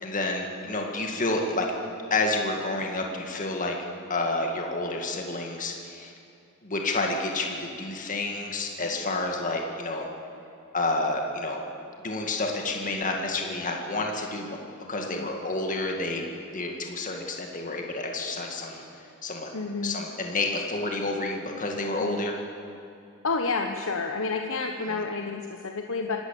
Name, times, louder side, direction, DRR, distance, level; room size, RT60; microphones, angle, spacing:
voice 1, 0.0-1.7 2.1-3.8 4.1-6.1 6.6-10.1 10.7-11.6 12.0-14.5 14.9-16.3 16.5-18.8 19.2-19.5 19.8-22.4, left 2 dB, 35° left, 1 dB, 2.0 m, -29 dB
voice 2, 19.5-20.0 22.0-22.1 23.2-26.2, left 4 dB, 60° left, 4 dB, 1.1 m, -30 dB
26.0 x 13.0 x 8.4 m, 2.7 s
head